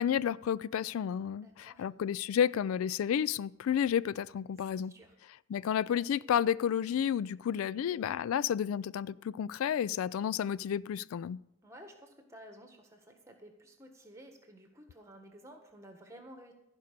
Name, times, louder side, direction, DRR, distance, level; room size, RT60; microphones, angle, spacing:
voice 1, 0.0-4.9 5.5-11.4, left 9 dB, 90° left, 0.3 m, -31 dB
voice 2, 1.4-1.9 4.9-5.1 7.5-7.9 11.6-16.5, right 1 dB, 15° right, 1.4 m, -53 dB
15.0 x 5.3 x 6.7 m
head